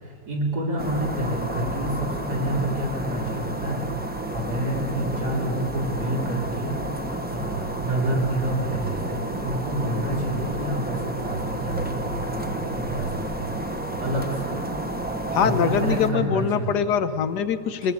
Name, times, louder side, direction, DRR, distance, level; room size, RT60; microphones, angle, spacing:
voice 1, 0.3-3.8 4.3-6.8 7.3-13.6 14.0-14.6 15.4-16.9, right 1 dB, 75° right, -2 dB, 4.2 m, -28 dB
sound 1, 0.8-16.1, right 1 dB, 5° right, 0.9 m, -31 dB
voice 2, 15.3-17.9, left 7 dB, 90° left, 10 dB, 1.5 m, -23 dB
23.5 x 18.0 x 8.4 m, 2.8 s
omnidirectional pair, 1.7 m